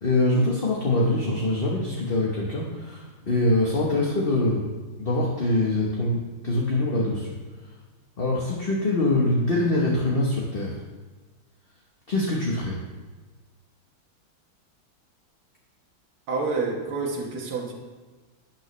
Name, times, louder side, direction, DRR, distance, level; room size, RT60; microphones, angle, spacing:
voice 1, 0.0-4.7 5.0-7.8 8.2-10.8 12.1-12.8, left 2 dB, 35° left, -3 dB, 1.1 m, -24 dB
voice 2, 16.3-17.7, right 3 dB, 85° right, -1 dB, 2.1 m, -28 dB
12.0 x 8.8 x 3.2 m, 1.3 s
omnidirectional pair, 2.2 m